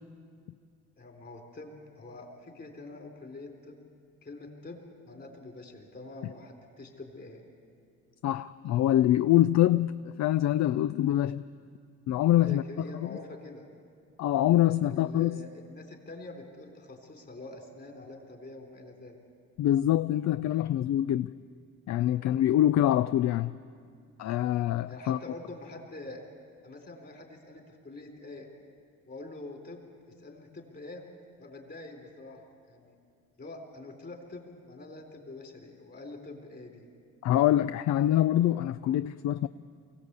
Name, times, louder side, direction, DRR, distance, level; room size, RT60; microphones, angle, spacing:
voice 1, 1.0-3.8 4.2-7.4 12.4-13.7 14.8-19.2 24.9-26.2 26.6-28.5 29.1-31.1 31.4-33.0 33.4-36.9, left 2 dB, 35° left, 3 dB, 3.8 m, -45 dB
voice 2, 8.2-11.4 12.1-12.6 13.0-13.1 14.2-15.4 19.6-21.3 21.9-23.6 24.2-25.2 37.2-39.5, left 12 dB, 65° left, 14 dB, 0.5 m, -25 dB
23.5 x 16.0 x 8.2 m, 2.2 s
cardioid pair, 90°, 30 cm